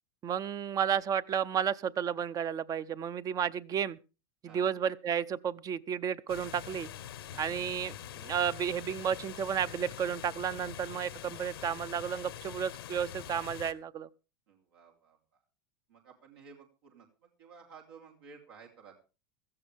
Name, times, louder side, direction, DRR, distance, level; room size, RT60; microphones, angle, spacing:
voice 1, 0.2-4.0 4.4-6.9 7.4-14.1, right 8 dB, 30° right, 0.6 m, -32 dB
sound 1, 6.3-13.7, left 11 dB, 90° left, 1.0 m, -45 dB
voice 2, 14.5-15.4 15.9-19.0, right 5 dB, 80° right, 3.3 m, -55 dB
16.5 x 14.0 x 3.4 m
supercardioid pair, 115°, 12 cm